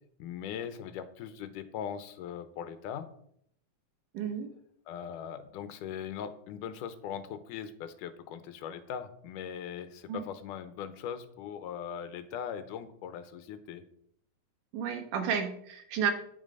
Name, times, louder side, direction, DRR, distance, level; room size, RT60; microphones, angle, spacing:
voice 1, 0.2-3.1 4.9-13.8, left 8 dB, 80° left, 11 dB, 2.3 m, -40 dB
voice 2, 4.1-4.5 10.1-10.2 14.7-16.1, right 7 dB, 80° right, 5 dB, 2.9 m, -31 dB
9.7 x 7.5 x 5.3 m, 0.69 s
omnidirectional pair, 3.7 m